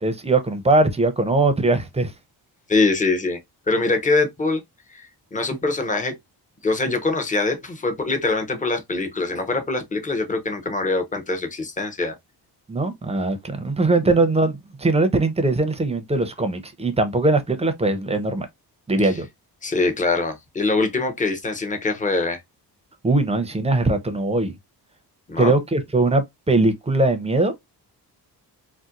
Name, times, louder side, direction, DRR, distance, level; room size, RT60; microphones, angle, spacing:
voice 1, 0.0-2.1 12.7-18.5 18.9-19.3 23.0-24.5 25.4-27.5, right 2 dB, 15° right, 0.7 m, -20 dB
voice 2, 2.7-3.4 3.7-4.6 4.9-6.2 6.6-12.1 14.0-14.1 19.0-19.1 19.6-22.4 25.3-25.6, left 3 dB, 20° left, 0.8 m, -23 dB
4.2 x 2.2 x 2.5 m
cardioid pair, 110°, 40 cm